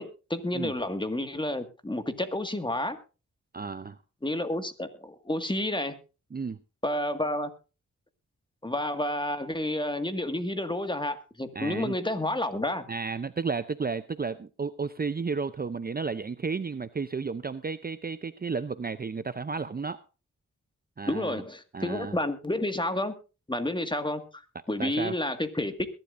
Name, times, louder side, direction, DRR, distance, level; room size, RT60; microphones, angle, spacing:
voice 1, 0.0-3.0 4.2-6.0 6.8-7.5 8.6-12.8 21.1-23.1 23.5-25.9, left 1 dB, 15° left, 8 dB, 1.9 m, -30 dB
voice 2, 3.5-4.0 6.3-6.6 11.5-12.0 12.9-20.0 21.0-21.4 21.7-22.1 24.8-25.1, right 5 dB, 30° right, 13 dB, 0.6 m, -33 dB
22.0 x 12.0 x 2.6 m, 0.32 s
cardioid pair, 70°, 30 cm